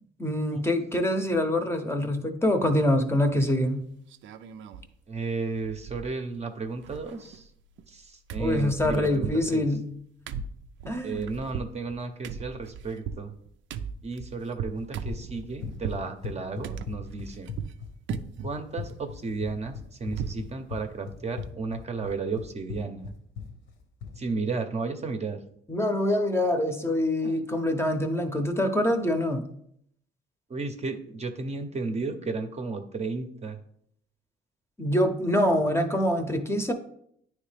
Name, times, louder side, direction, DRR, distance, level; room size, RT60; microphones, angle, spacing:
voice 1, 0.2-3.8 8.4-9.8 10.9-11.2 15.6-15.7 25.7-29.4 34.8-36.7, left 1 dB, 10° left, 5 dB, 0.7 m, -25 dB
sound 1, 3.4-3.7 4.1-4.9 5.2-5.3 5.5-6.4 6.7-8.0 8.3-16.1 16.6-17.8 18.1-18.5 18.9-20.5 20.8-20.9 21.3-21.4, right 7 dB, 70° right, 0.4 m, -38 dB
voice 2, 5.1-7.5 7.9-9.7 11.0-13.3 14.0-17.5 18.4-23.1 24.2-25.4 27.2-27.4 30.5-33.6, right 4 dB, 35° right, 6 dB, 0.7 m, -33 dB
Run, 14.8-24.2, left 7 dB, 75° left, 1.0 m, -39 dB
9.3 x 3.2 x 3.3 m, 0.69 s
cardioid pair, 90°, 20 cm